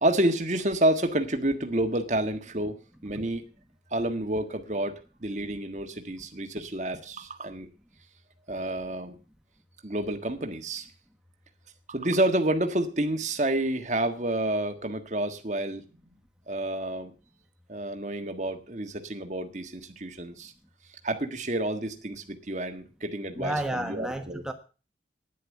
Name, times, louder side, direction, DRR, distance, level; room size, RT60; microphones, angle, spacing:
voice 1, 0.0-2.8 3.0-3.4 3.9-7.7 8.5-9.1 9.8-10.9 11.9-15.8 16.5-17.1 17.7-20.5 21.0-24.4, right 1 dB, 40° right, 1.6 m, -29 dB
voice 2, 23.3-24.5, right 1 dB, 5° right, 1.3 m, -31 dB
10.5 x 10.5 x 7.2 m
head